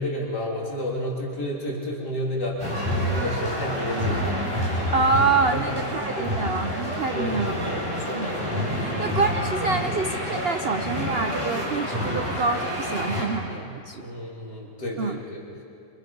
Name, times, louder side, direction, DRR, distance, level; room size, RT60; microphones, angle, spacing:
voice 1, 0.0-2.7 3.1-4.2 5.5-5.6 5.9-6.3 7.1-7.6 8.9-9.1 14.0-15.4, left 1 dB, 65° left, -3 dB, 3.8 m, -31 dB
sound 1, 2.6-13.2, equal, 10° right, 5.9 m, -28 dB
voice 2, 4.9-7.7 8.1-14.1 15.0-15.2, right 4 dB, 65° right, 7 dB, 0.5 m, -27 dB
27.0 x 26.5 x 5.4 m, 2.6 s
omnidirectional pair, 1.9 m